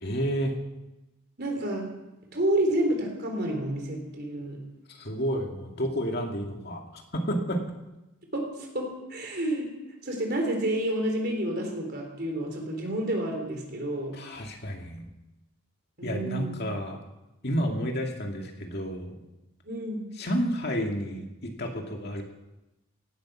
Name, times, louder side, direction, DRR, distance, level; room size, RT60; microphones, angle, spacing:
voice 1, 0.0-0.5 5.0-7.6 14.1-15.1 16.0-17.0 17.4-19.2 20.2-22.2, equal, 45° left, 2 dB, 2.2 m, -30 dB
voice 2, 1.4-1.9 2.3-4.6 8.3-9.7 10.0-14.2 16.0-16.5 19.6-20.1, right 1 dB, 45° right, 3 dB, 3.7 m, -29 dB
17.0 x 12.0 x 6.2 m, 0.98 s
head